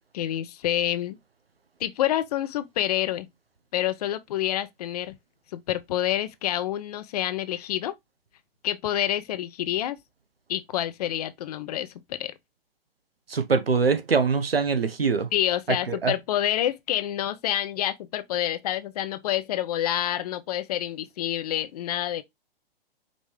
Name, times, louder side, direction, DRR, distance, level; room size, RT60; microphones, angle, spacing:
voice 1, 0.1-1.2 1.8-3.3 3.7-5.2 5.5-7.9 8.6-10.0 10.5-12.3 15.3-22.2, left 12 dB, 45° left, 0.5 m, -28 dB
voice 2, 13.3-15.3 15.9-16.1, right 5 dB, 85° right, 0.9 m, -23 dB
5.1 x 3.0 x 3.2 m
figure-of-eight pair, 115°, 29 cm